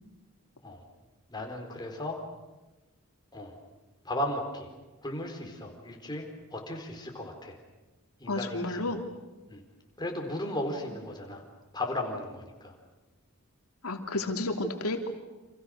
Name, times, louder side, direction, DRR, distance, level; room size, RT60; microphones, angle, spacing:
voice 1, 1.3-2.2 3.3-3.6 4.0-4.7 5.0-7.6 8.2-9.0 9.5-9.6 10.0-11.4 11.7-12.7, left 1 dB, 20° left, 2 dB, 4.3 m, -36 dB
voice 2, 8.3-9.0 13.8-15.1, left 2 dB, 85° left, 4 dB, 3.0 m, -31 dB
29.5 x 27.0 x 6.5 m, 1.1 s
head